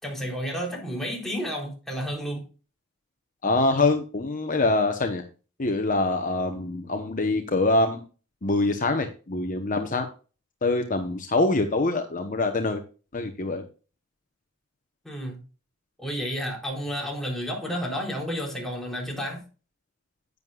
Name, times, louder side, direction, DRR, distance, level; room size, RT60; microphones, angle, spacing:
voice 1, 0.0-2.4 15.0-15.4 16.0-19.4, equal, ahead, 3.7 m, -31 dB
voice 2, 3.4-5.2 5.6-8.0 8.4-10.1 10.6-12.8 13.1-13.6, left 2 dB, 40° left, 1.0 m, -24 dB
10.5 x 9.5 x 2.4 m
head